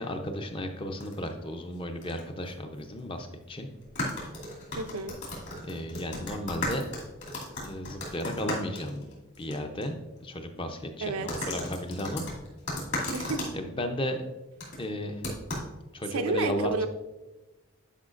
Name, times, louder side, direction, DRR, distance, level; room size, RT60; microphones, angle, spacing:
voice 1, 0.0-3.7 5.6-6.8 7.5-9.1 9.4-12.2 13.5-14.3 14.8-15.3 15.9-16.9, left 1 dB, 25° left, 6 dB, 0.5 m, -34 dB
sound 1, 1.0-1.3 2.0-2.2 2.5-2.6 3.8-9.5 9.8-9.9 11.3-13.5 14.6-14.8 15.2-15.7, left 1 dB, 55° left, 2.4 m, -35 dB
voice 2, 4.8-5.2 11.0-11.3 13.1-13.5 16.1-16.9, right 3 dB, 75° right, 8 dB, 0.5 m, -30 dB
10.0 x 5.0 x 2.5 m, 1.1 s
head